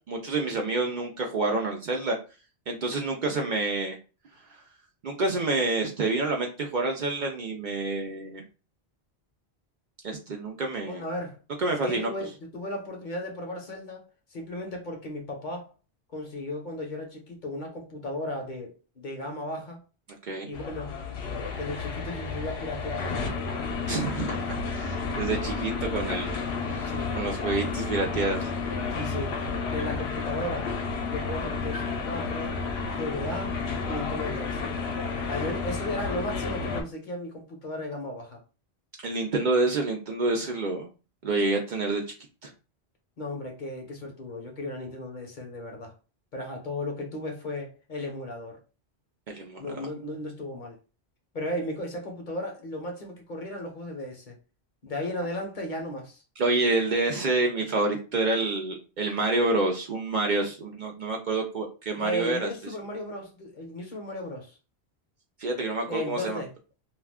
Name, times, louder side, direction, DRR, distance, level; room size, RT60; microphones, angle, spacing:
voice 1, 0.1-2.1 2.7-3.9 5.0-8.4 10.0-11.0 11.6-12.1 20.3-20.5 23.9-26.3 26.7-28.5 39.0-40.9 41.2-42.0 42.4-42.5 49.3-49.9 56.4-62.5 65.4-66.4, right 2 dB, 55° right, 0.6 m, -28 dB
voice 2, 10.9-11.4 11.7-15.7 16.1-19.8 20.4-21.0 21.6-23.4 26.8-27.2 28.9-29.4 29.7-30.7 31.1-32.6 32.9-33.6 33.9-34.7 35.3-38.4 43.2-45.9 46.3-48.6 49.6-50.8 51.3-54.3 54.8-56.2 62.0-64.6 65.9-66.5, left 1 dB, 50° left, 0.8 m, -35 dB
sound 1, 20.5-36.8, left 4 dB, 80° left, 0.9 m, -31 dB
2.3 x 2.3 x 3.4 m
omnidirectional pair, 1.1 m